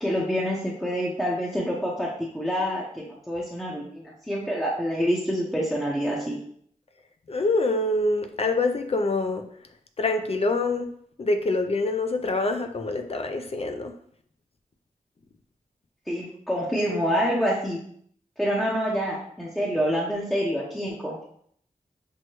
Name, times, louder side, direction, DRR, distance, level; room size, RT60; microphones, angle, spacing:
voice 1, 0.0-6.4 16.1-17.8 18.4-21.2, equal, ahead, -5 dB, 0.7 m, -27 dB
voice 2, 7.3-9.4 10.0-10.9 11.2-13.9, left 2 dB, 45° left, 6 dB, 0.4 m, -25 dB
6.2 x 2.1 x 2.9 m, 0.65 s
wide cardioid pair, 85°, 15 cm